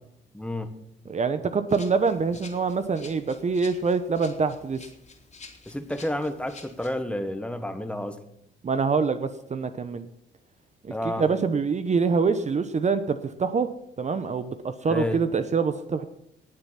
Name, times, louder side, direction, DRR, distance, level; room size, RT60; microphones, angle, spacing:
voice 1, 0.3-0.7 5.7-8.2 10.9-11.3 14.9-15.2, left 1 dB, 5° left, 9 dB, 1.4 m, -30 dB
voice 2, 1.1-4.8 8.6-10.1 10.8-13.7 14.0-16.0, right 5 dB, 35° right, 10 dB, 0.9 m, -25 dB
Rattle (instrument), 1.7-6.9, left 4 dB, 35° left, 3.0 m, -49 dB
19.0 x 7.3 x 5.8 m, 0.75 s
cardioid pair, 90°, 20 cm